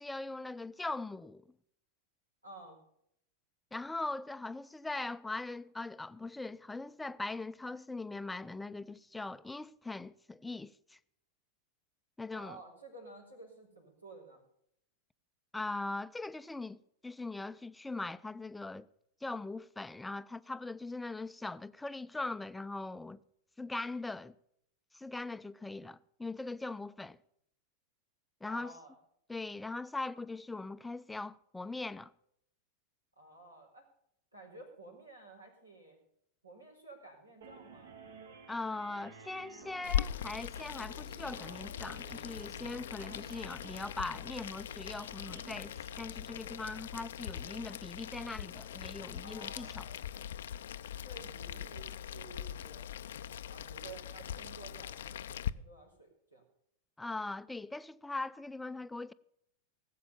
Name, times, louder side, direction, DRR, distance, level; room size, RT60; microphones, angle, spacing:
voice 1, 0.0-1.4 3.7-11.0 12.2-12.6 15.5-16.8 17.0-18.9 19.2-23.2 23.6-24.3 24.9-27.2 28.4-28.7 29.3-32.1 38.5-49.9 57.0-59.1, left 3 dB, 5° left, 0.5 m, -40 dB
voice 2, 2.4-2.8 12.3-14.4 28.5-28.9 33.2-33.8 34.3-36.0 36.4-38.0 49.2-50.0 50.9-52.9 53.5-56.4, right 2 dB, 85° right, 4.6 m, -53 dB
sound 1, 37.4-46.0, right 4 dB, 65° right, 2.1 m, -55 dB
Boiling, 39.8-55.5, left 10 dB, 60° left, 0.5 m, -41 dB
18.0 x 8.4 x 7.0 m
figure-of-eight pair, 90°, 0 cm